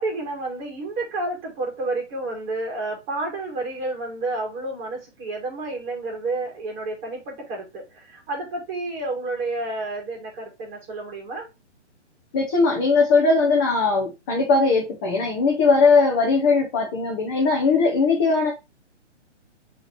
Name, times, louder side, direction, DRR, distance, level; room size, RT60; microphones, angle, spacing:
voice 1, 0.0-11.5, right 2 dB, 20° right, 1.8 m, -30 dB
voice 2, 12.3-18.5, left 4 dB, 15° left, 0.5 m, -19 dB
5.6 x 3.0 x 3.2 m
hypercardioid pair, 145°, 36 cm